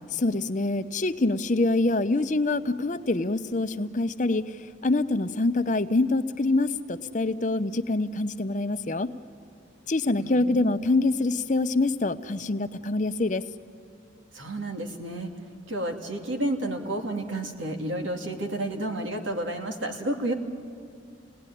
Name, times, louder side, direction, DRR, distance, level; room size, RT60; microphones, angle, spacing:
voice 1, 0.1-9.1 9.9-13.4, left 2 dB, 40° left, 11 dB, 0.7 m, -25 dB
voice 2, 10.2-10.8 14.3-15.3 15.7-20.3, right 1 dB, 90° right, 3 dB, 2.5 m, -31 dB
28.5 x 18.0 x 10.0 m, 2.4 s
head